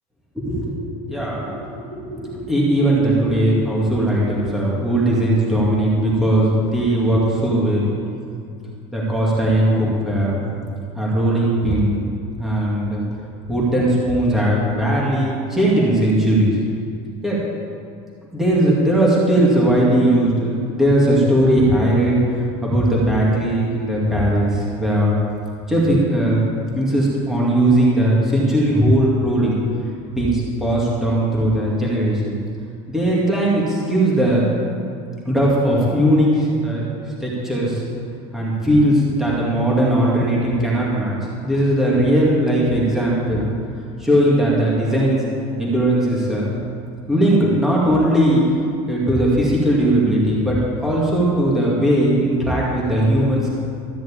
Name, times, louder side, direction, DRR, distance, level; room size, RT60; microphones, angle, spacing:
voice 1, 0.3-7.9 8.9-10.4 10.9-12.0 12.4-13.0 13.5-16.5 17.2-17.4 18.3-25.2 25.7-26.5 26.7-29.6 30.2-32.4 32.9-34.5 35.3-36.8 37.2-37.8 38.3-43.5 44.0-45.2 45.6-46.5 47.1-48.4 48.9-53.6, right 1 dB, 5° right, -6 dB, 2.3 m, -18 dB
13.5 x 6.3 x 8.8 m, 2.4 s
cardioid pair, 170°, 16 cm